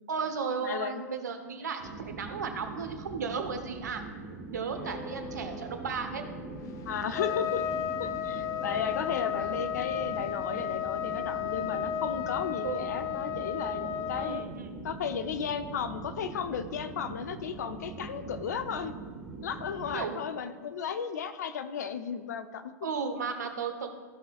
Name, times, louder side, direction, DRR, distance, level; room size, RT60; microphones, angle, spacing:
voice 1, 0.1-4.0 4.5-6.2 9.2-9.6 12.6-12.9 14.1-14.8 19.9-20.3 22.8-23.9, right 5 dB, 80° right, 6 dB, 1.0 m, -35 dB
voice 2, 0.6-1.0 4.9-5.0 6.9-7.6 8.0-14.4 14.8-18.9 19.4-22.7, left 7 dB, 75° left, 10 dB, 0.7 m, -34 dB
sound 1, 1.8-20.0, right 3 dB, 50° right, 1.3 m, -43 dB
sound 2, 4.7-15.1, left 2 dB, 60° left, 2.5 m, -49 dB
Trumpet, 7.1-14.5, left 10 dB, 35° left, 0.5 m, -33 dB
14.0 x 5.7 x 2.4 m, 1.4 s
hypercardioid pair, 95°, 9 cm